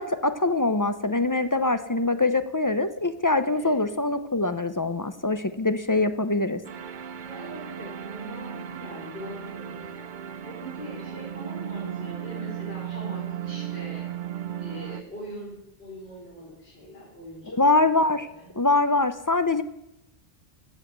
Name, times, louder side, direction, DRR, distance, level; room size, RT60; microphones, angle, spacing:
voice 1, 0.0-6.6 17.5-18.3 18.6-19.6, left 2 dB, 30° left, 11 dB, 0.4 m, -23 dB
sound 1, 6.6-15.0, right 10 dB, 55° right, 0.7 m, -36 dB
voice 2, 7.2-10.1 10.4-14.1 14.6-18.5, equal, 75° left, -5 dB, 4.6 m, -42 dB
14.0 x 7.6 x 7.8 m, 0.88 s
omnidirectional pair, 1.1 m